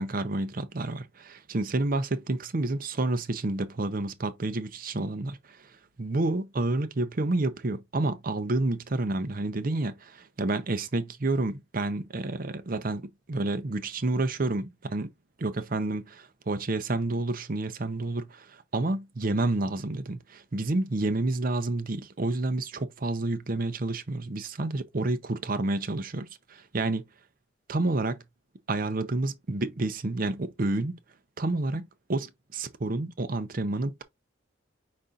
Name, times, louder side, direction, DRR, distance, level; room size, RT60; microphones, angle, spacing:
voice 1, 0.0-5.7 6.0-15.1 15.4-27.0 27.7-28.2 28.7-30.9 31.4-31.8 32.1-34.0, right 2 dB, 45° right, 0.7 m, -29 dB
5.2 x 4.1 x 2.4 m
head